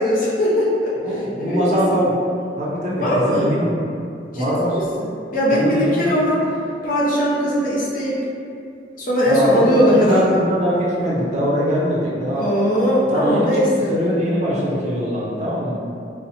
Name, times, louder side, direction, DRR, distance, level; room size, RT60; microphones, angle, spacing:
voice 1, 0.0-0.9 1.4-1.8 3.0-3.5 4.3-6.4 6.8-8.2 9.0-10.4 12.3-13.9, equal, 50° left, -6 dB, 0.5 m, -19 dB
voice 2, 1.0-2.2 2.6-3.7 4.4-4.8 5.5-6.2 9.3-12.5 13.1-15.8, equal, 40° right, -6 dB, 0.5 m, -22 dB
2.8 x 2.0 x 2.7 m, 2.4 s
head